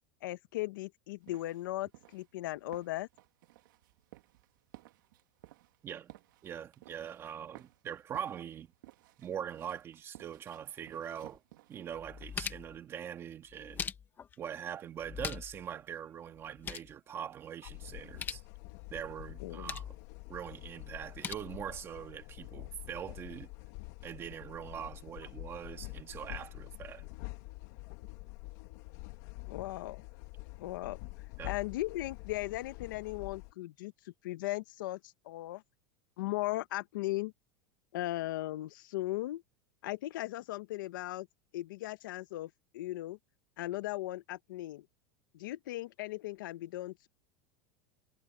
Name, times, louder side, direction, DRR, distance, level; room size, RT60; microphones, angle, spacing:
voice 1, 0.2-3.1 19.4-19.8 29.5-30.0 30.6-31.0 31.4-33.9 34.2-35.0 35.2-35.6 36.2-37.3 37.9-39.4 39.8-41.3 41.5-43.2 43.6-44.8 45.3-47.1, left 17 dB, 85° left, 1.1 m, -37 dB
sound 1, 1.2-12.4, right 17 dB, 75° right, 2.2 m, -58 dB
voice 2, 5.8-6.1 6.4-8.7 9.2-11.4 11.7-13.9 14.4-18.4 18.9-20.0 20.3-23.5 24.0-27.0 31.4-31.5, right 9 dB, 25° right, 1.7 m, -42 dB
sound 2, 11.3-11.4 11.9-12.8 13.5-14.3 15.0-15.7 15.9-16.0 16.4-16.9 18.0-18.5 19.3-20.0 20.9-21.3, left 7 dB, 20° left, 1.3 m, -41 dB
sound 3, 17.6-33.5, left 22 dB, 55° left, 1.6 m, -47 dB
supercardioid pair, 165°, 11 cm